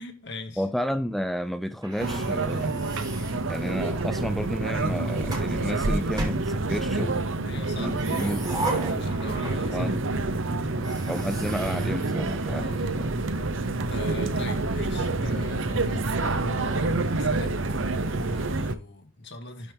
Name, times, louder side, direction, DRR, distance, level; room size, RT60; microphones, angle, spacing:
voice 1, 0.0-0.6 7.3-10.6 12.5-13.0 13.3-13.4 13.9-19.7, left 2 dB, 55° left, 2.0 m, -41 dB
voice 2, 0.6-2.8 3.5-7.3 7.8-8.4 9.7-10.0 11.1-13.1, equal, ahead, 0.3 m, -31 dB
sound 1, 1.8-4.1 4.8-5.5 6.1-7.1 7.8-9.9 10.2-10.3 10.7-12.8, right 2 dB, 20° right, 2.2 m, -37 dB
sound 2, 2.0-18.7, right 2 dB, 60° right, 0.8 m, -27 dB
11.5 x 4.4 x 3.5 m
head